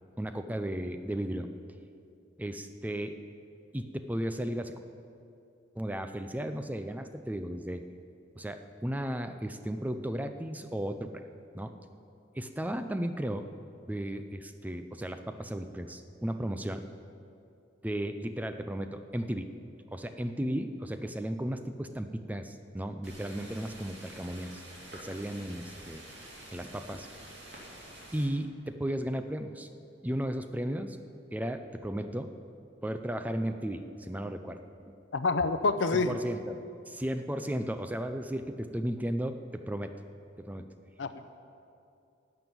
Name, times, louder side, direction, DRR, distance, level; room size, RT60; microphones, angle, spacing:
voice 1, 0.2-1.5 2.4-3.2 3.7-4.7 5.8-7.8 8.4-11.2 11.5-11.7 12.3-13.4 13.9-16.8 17.8-19.5 19.9-24.6 24.9-26.0 26.5-27.1 28.1-29.7 30.0-31.0 31.3-32.3 32.8-35.0 35.9-36.5 36.9-39.9 40.4-40.7, right 1 dB, 10° right, 8 dB, 0.4 m, -35 dB
sound 1, 23.0-28.3, right 1 dB, 65° right, 2.6 m, -48 dB
voice 2, 35.1-36.2 41.0-41.4, left 3 dB, 80° left, 10 dB, 0.7 m, -28 dB
12.0 x 7.1 x 9.6 m, 2.6 s
head